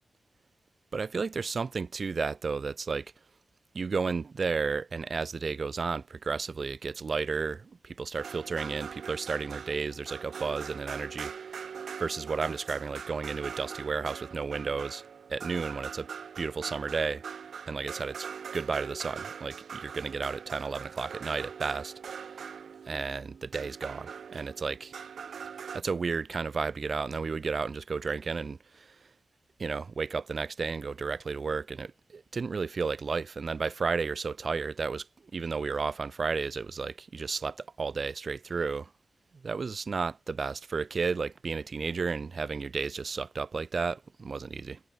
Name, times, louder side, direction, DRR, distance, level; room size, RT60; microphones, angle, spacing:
voice 1, 0.9-3.1 3.7-11.3 12.0-15.0 15.3-16.1 16.4-17.2 17.7-18.3 18.5-22.1 22.9-24.9 25.7-28.9 29.6-35.1 35.3-38.9 39.4-44.8, right 4 dB, 45° right, 0.5 m, -32 dB
sound 1, 8.2-25.8, right 7 dB, 75° right, 1.1 m, -42 dB
wide cardioid pair, 165°, 0 cm